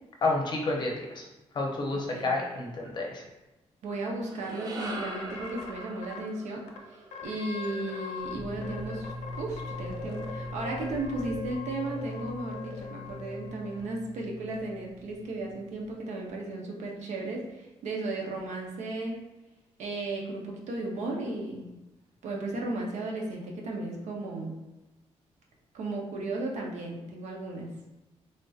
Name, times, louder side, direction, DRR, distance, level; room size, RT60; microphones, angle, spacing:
voice 1, 0.2-1.2 1.5-3.2, left 2 dB, 40° left, -1 dB, 0.6 m, -30 dB
voice 2, 1.9-2.3 3.8-6.6 6.9-19.3 19.8-21.7 22.2-24.6 25.7-27.7, right 2 dB, 90° right, 0 dB, 0.6 m, -35 dB
sound 1, 4.1-8.5, right 2 dB, 35° right, 0.4 m, -43 dB
sound 2, 4.8-6.2 6.7-6.8 7.1-8.3 8.6-13.8, left 5 dB, 80° left, 0.4 m, -41 dB
sound 3, 8.2-15.9, left 1 dB, ahead, 1.0 m, -41 dB
3.3 x 2.7 x 2.3 m, 1.0 s
wide cardioid pair, 150°, 12 cm